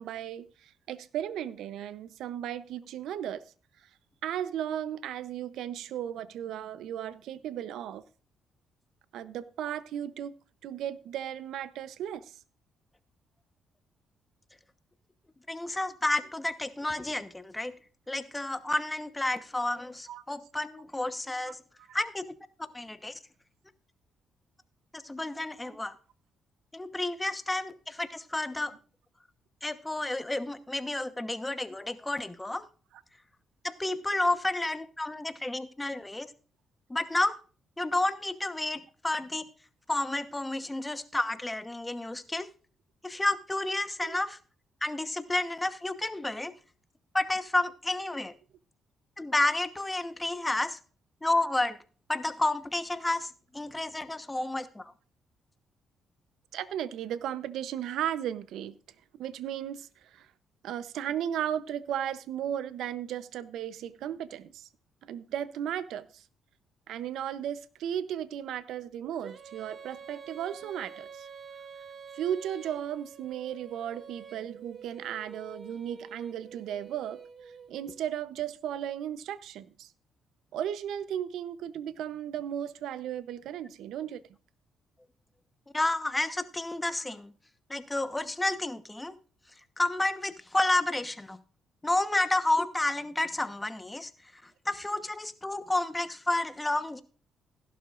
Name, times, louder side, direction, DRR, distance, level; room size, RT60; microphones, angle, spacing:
voice 1, 0.0-3.4 4.2-8.0 9.1-10.3 10.6-12.3 20.1-20.2 21.5-21.6 44.0-44.2 50.4-50.5 56.5-58.8 59.2-60.3 60.6-64.7 65.0-66.2 66.9-71.3 72.1-77.2 77.7-79.9 80.5-84.2, right 10 dB, 80° right, 0.6 m, -35 dB
voice 2, 15.5-17.7 18.1-21.6 21.9-22.2 22.7-23.2 24.9-25.9 26.7-28.7 29.6-32.6 33.6-36.3 36.9-37.4 37.8-39.5 39.9-42.5 43.0-44.4 44.8-46.5 47.1-48.3 49.2-50.8 51.2-51.8 52.1-54.9 85.7-87.3 87.7-89.2 89.8-91.4 91.8-94.1 94.4-97.0, left 2 dB, 15° left, 1.1 m, -30 dB
Female singing, 69.2-78.0, right 6 dB, 50° right, 1.3 m, -47 dB
15.5 x 11.5 x 2.5 m
cardioid pair, 90°, 0 cm